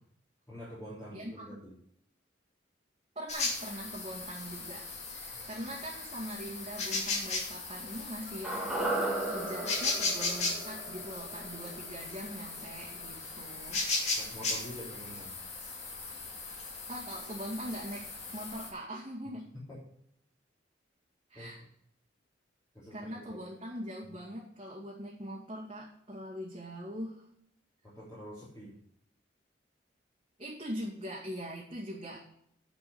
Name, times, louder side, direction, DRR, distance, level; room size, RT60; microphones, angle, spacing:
voice 1, 0.5-1.7 5.3-5.5 14.1-15.4 19.7-19.8 21.3-21.5 22.7-23.4 24.1-24.2 27.8-28.8, equal, 15° left, -9 dB, 3.6 m, -46 dB
voice 2, 1.1-1.4 3.2-9.0 9.3-13.8 16.9-18.0 18.3-19.5 21.3-21.6 22.9-27.2 30.4-32.2, equal, 30° right, -6 dB, 2.2 m, -42 dB
sound 1, 3.3-18.7, left 3 dB, 35° left, 2.4 m, -37 dB
sound 2, 8.4-12.8 13.0-13.1, right 2 dB, 5° right, 1.9 m, -36 dB
9.9 x 5.3 x 7.0 m, 0.70 s
head